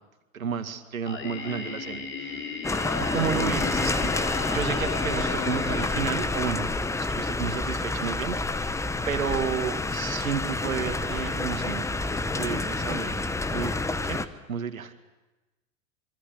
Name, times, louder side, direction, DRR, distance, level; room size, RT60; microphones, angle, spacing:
voice 1, 0.3-2.7 3.0-6.7 7.0-8.6 9.1-11.8 12.3-13.8 14.0-14.9, right 7 dB, 75° right, 8 dB, 2.2 m, -32 dB
Singing, 1.1-7.0, left 4 dB, 25° left, 3.6 m, -36 dB
sound 1, 2.6-14.3, left 3 dB, 5° left, 1.0 m, -28 dB
26.5 x 24.5 x 8.1 m, 1.1 s
figure-of-eight pair, 90°, 42 cm